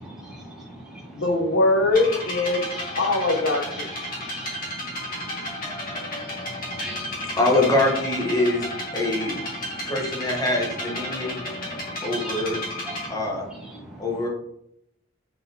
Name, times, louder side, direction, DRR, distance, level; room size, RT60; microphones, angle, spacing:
voice 1, 0.0-1.1 2.7-2.8 4.0-7.4 9.5-9.9 11.1-13.1 13.6-14.0, right 1 dB, 5° right, -4 dB, 1.1 m, -40 dB
voice 2, 1.1-2.7 3.0-3.9 6.8-6.9, left 2 dB, 70° left, 4 dB, 0.7 m, -22 dB
sound 1, 1.9-13.1, left 1 dB, 45° left, 1.6 m, -33 dB
voice 3, 6.8-9.4 9.8-11.4 12.0-12.6 13.1-13.5 14.0-14.3, left 2 dB, 20° left, -1 dB, 0.8 m, -24 dB
4.1 x 3.9 x 2.7 m, 0.78 s
head